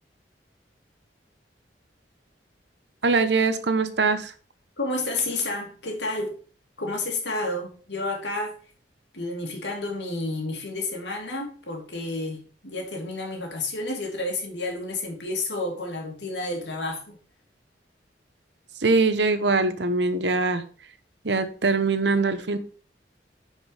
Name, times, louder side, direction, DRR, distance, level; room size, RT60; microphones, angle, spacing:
voice 1, 3.0-4.3 18.8-20.6 21.2-22.6, right 3 dB, 75° right, 1.0 m, -22 dB
voice 2, 4.8-6.4 6.8-8.5 9.1-17.2, left 2 dB, 75° left, 2.9 m, -30 dB
9.6 x 5.4 x 5.0 m
head